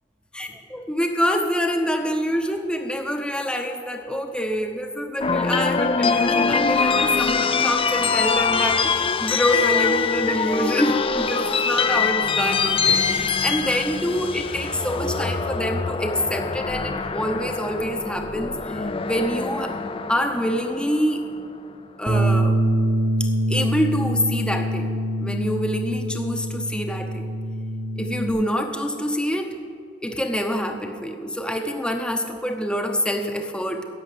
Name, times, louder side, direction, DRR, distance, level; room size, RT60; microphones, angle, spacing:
voice 1, 0.3-19.8 20.1-21.3 22.0-22.6 23.2-24.9 25.2-27.3 28.0-29.6 30.0-33.8, equal, 5° left, 4 dB, 0.8 m, -26 dB
sound 1, 5.2-21.4, left 5 dB, 30° left, 0.5 m, -24 dB
Bass guitar, 22.1-28.3, right 1 dB, 25° right, 1.1 m, -24 dB
11.0 x 7.4 x 9.2 m, 2.2 s
head